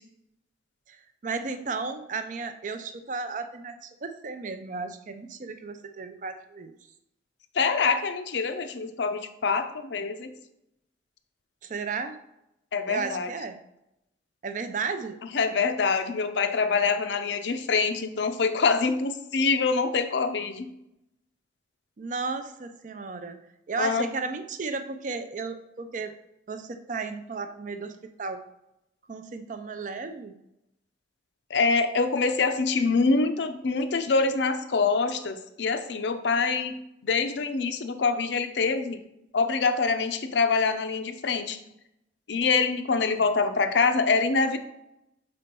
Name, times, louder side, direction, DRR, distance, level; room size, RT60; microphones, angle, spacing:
voice 1, 0.9-6.7 11.6-12.2 12.9-13.6 14.4-15.2 22.0-23.4 23.7-26.1 26.5-28.4 29.1-30.3, right 4 dB, 45° right, 9 dB, 0.5 m, -34 dB
voice 2, 7.5-10.3 12.7-13.3 15.3-20.7 23.8-24.0 31.5-36.7 37.0-39.0 39.3-41.6 42.3-44.6, left 4 dB, 75° left, 9 dB, 0.5 m, -25 dB
4.3 x 4.3 x 5.3 m, 0.85 s
head